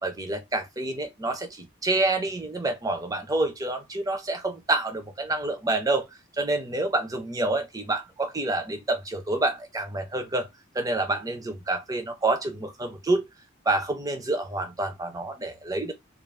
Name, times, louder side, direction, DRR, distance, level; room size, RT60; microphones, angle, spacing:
voice 1, 0.0-6.1 6.3-10.5 10.7-13.3 13.6-15.9, right 2 dB, 15° right, 0.5 m, -28 dB
2.4 x 2.1 x 3.2 m
head